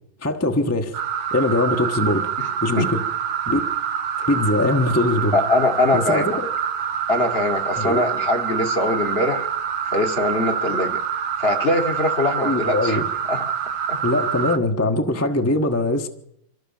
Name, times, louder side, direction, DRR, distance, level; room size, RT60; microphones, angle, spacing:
voice 1, 0.2-0.9 1.3-2.3 2.6-3.0 3.5-3.6 4.2-5.4 5.9-6.5 7.8-8.0 12.4-13.0 14.0-16.1, left 2 dB, 10° left, 4 dB, 0.9 m, -21 dB
sound 1, 0.9-14.6, right 8 dB, 85° right, 1.8 m, -26 dB
voice 2, 5.3-6.4 7.1-9.5 9.9-11.0 11.4-13.0 13.3-13.5 13.9-14.0, left 2 dB, 35° left, 5 dB, 1.3 m, -22 dB
25.0 x 14.5 x 7.2 m, 0.79 s
omnidirectional pair, 2.2 m